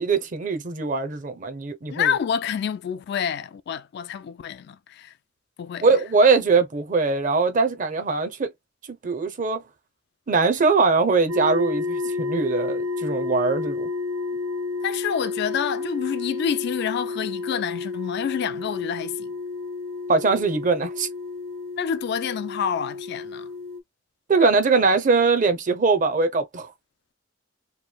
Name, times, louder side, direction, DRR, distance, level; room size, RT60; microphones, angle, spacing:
voice 1, 0.0-2.1 5.8-8.5 9.0-9.6 10.3-13.9 20.1-21.1 24.3-26.7, right 4 dB, 40° right, 0.6 m, -21 dB
voice 2, 1.9-5.1 5.6-5.8 14.8-19.3 21.8-23.5, left 8 dB, 55° left, 0.3 m, -28 dB
sound 1, 11.3-23.8, left 4 dB, 85° right, 0.5 m, -31 dB
3.0 x 2.5 x 2.2 m
head